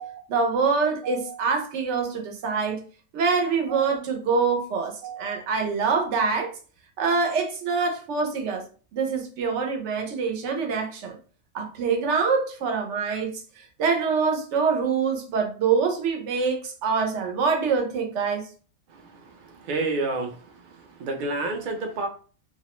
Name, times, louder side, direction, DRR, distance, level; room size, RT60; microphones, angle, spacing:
voice 1, 0.0-2.8 3.1-6.5 7.0-8.6 8.9-11.2 11.5-18.5, right 5 dB, 75° right, 0.9 m, -25 dB
voice 2, 19.6-20.3 21.0-22.1, right 2 dB, 60° right, 0.5 m, -27 dB
2.4 x 2.0 x 2.9 m
omnidirectional pair, 1.2 m